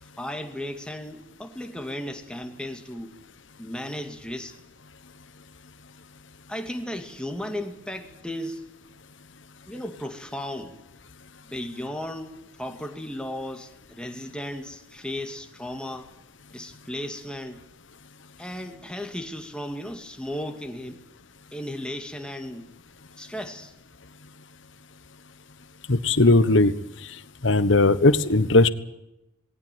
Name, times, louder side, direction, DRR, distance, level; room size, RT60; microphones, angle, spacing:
voice 1, 0.0-3.1 3.6-4.6 6.5-8.6 9.7-10.8 11.4-16.1 16.5-17.6 18.4-21.0 21.5-22.7 23.2-23.7, left 1 dB, 5° left, 5 dB, 2.3 m, -35 dB
voice 2, 25.9-26.8 27.4-28.7, left 2 dB, 65° left, 13 dB, 1.2 m, -18 dB
19.5 x 18.0 x 9.2 m, 0.91 s
head